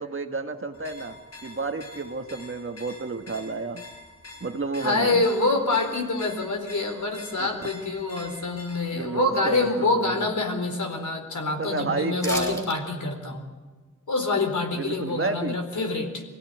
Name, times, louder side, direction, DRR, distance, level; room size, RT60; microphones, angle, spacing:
voice 1, 0.0-3.8 4.4-5.2 7.4-7.5 8.9-10.3 11.6-12.7 14.7-15.6, right 3 dB, 40° right, 5 dB, 1.5 m, -30 dB
sound 1, 0.7-9.0, left 2 dB, 45° left, 7.3 m, -46 dB
voice 2, 4.8-13.4 14.1-16.2, left 3 dB, 65° left, 3 dB, 4.4 m, -26 dB
sound 2, 12.2-12.8 13.1-13.2, equal, 10° left, 4.0 m, -32 dB
24.0 x 16.0 x 9.4 m, 1.3 s
wide cardioid pair, 110°, 32 cm